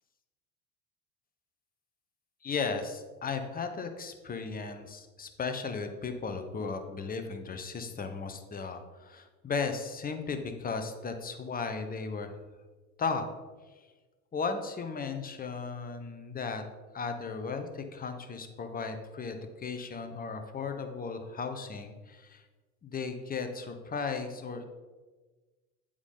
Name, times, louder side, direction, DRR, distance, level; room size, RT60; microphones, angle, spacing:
voice 1, 2.4-12.3 13.0-13.2 14.3-16.6 16.9-22.4 22.8-24.6, left 5 dB, 20° left, 7 dB, 0.8 m, -36 dB
8.1 x 4.8 x 3.7 m, 1.3 s
hypercardioid pair, 70°, 43 cm